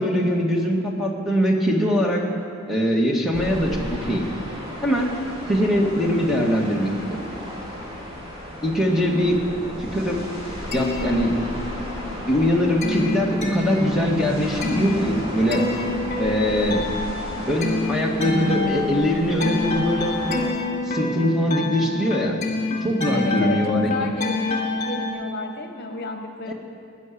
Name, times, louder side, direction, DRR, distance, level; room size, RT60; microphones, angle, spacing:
voice 1, 0.0-2.2 2.7-4.3 4.8-5.1 5.5-7.2 8.6-9.4 9.9-10.2 10.7-11.4 12.2-15.7 16.2-16.9 17.5-20.4 20.9-22.4 22.8-23.9 26.5-26.6, equal, ahead, -1 dB, 1.9 m, -22 dB
sound 1, 3.3-20.4, left 1 dB, 25° right, 3.3 m, -34 dB
voice 2, 9.0-9.5 23.1-26.5, left 2 dB, 55° left, 5 dB, 1.1 m, -32 dB
sound 2, 10.6-11.9 12.3-25.1, left 3 dB, 35° left, 2.3 m, -28 dB
19.5 x 6.5 x 9.9 m, 2.6 s
head